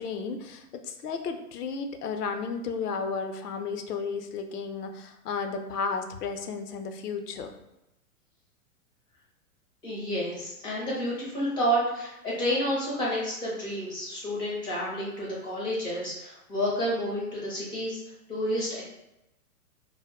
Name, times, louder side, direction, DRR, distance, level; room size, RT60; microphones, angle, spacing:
voice 1, 0.0-7.5, left 5 dB, 85° left, 6 dB, 0.5 m, -33 dB
voice 2, 9.8-18.0 18.3-18.8, equal, 10° left, -5 dB, 0.4 m, -30 dB
2.1 x 2.0 x 3.4 m, 0.91 s
hypercardioid pair, 120°, 45 cm